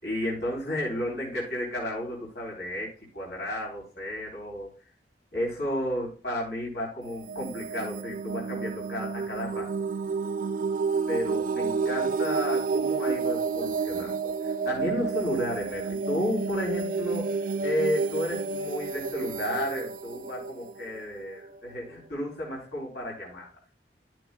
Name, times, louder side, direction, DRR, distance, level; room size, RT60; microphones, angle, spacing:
voice 1, 0.0-4.7 5.3-9.7 11.1-23.5, equal, 70° left, -3 dB, 3.8 m, -32 dB
sound 1, 7.1-21.7, right 5 dB, 50° right, 0.4 m, -30 dB
13.5 x 6.4 x 2.3 m, 0.38 s
head